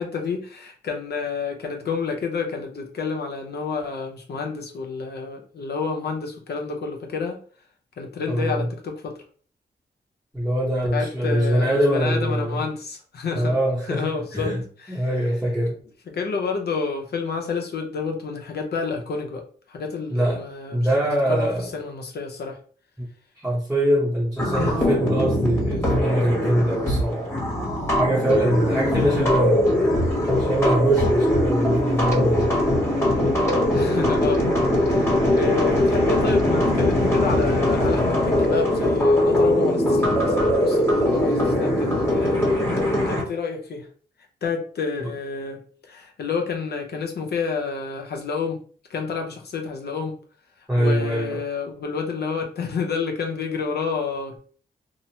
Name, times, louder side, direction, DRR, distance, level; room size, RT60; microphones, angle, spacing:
voice 1, 0.0-7.4 8.0-9.2 10.9-13.6 13.9-15.0 16.1-20.9 21.3-22.6 24.6-24.8 28.6-29.7 33.7-34.5 34.8-42.8 43.1-43.9 44.4-48.6 48.9-50.2 50.8-54.4, left 5 dB, 65° left, 0.7 m, -29 dB
voice 2, 8.3-8.6 10.3-12.6 13.3-14.6 14.9-15.8 20.1-20.4 20.7-21.7 23.0-23.1 23.4-27.3 28.0-29.7 30.4-32.6 50.7-51.4, right 1 dB, 5° right, 0.8 m, -23 dB
sound 1, 24.4-43.2, left 1 dB, 15° left, 1.2 m, -21 dB
2.9 x 2.0 x 2.8 m
cardioid pair, 90°, 18 cm